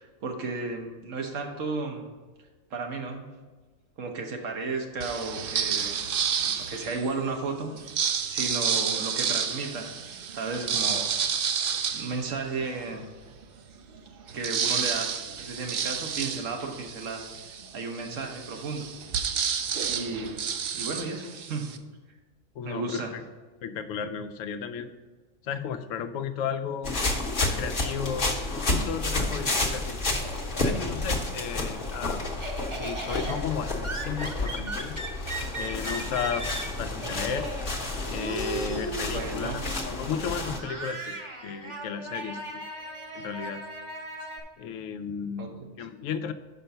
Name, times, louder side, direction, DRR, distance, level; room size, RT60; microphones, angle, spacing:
voice 1, 0.0-2.0 2.7-3.3 4.0-6.0 6.6-7.7 8.2-9.9 10.3-11.1 11.9-13.1 14.3-17.2 17.7-18.9 19.8-20.4 20.7-21.7 22.6-23.1 39.1-39.6 45.4-45.5, right 3 dB, 80° right, 4 dB, 1.3 m, -33 dB
sound 1, 5.0-7.2 7.7-12.9 13.4-13.5 13.8-21.8, right 7 dB, 60° right, 0.6 m, -30 dB
voice 2, 22.5-23.2 23.6-24.9 25.4-27.0 27.4-30.0 30.6-32.2 32.8-35.0 35.6-36.4 36.8-37.5 38.1-42.6 43.1-43.6 44.6-46.3, left 7 dB, 80° left, 9 dB, 0.9 m, -34 dB
sound 2, 26.8-40.6, left 2 dB, 45° left, 1.1 m, -31 dB
Laughter, 29.1-31.1 31.5-44.4, right 1 dB, 30° right, 0.8 m, -37 dB
5.7 x 5.2 x 6.5 m, 1.3 s
omnidirectional pair, 1.3 m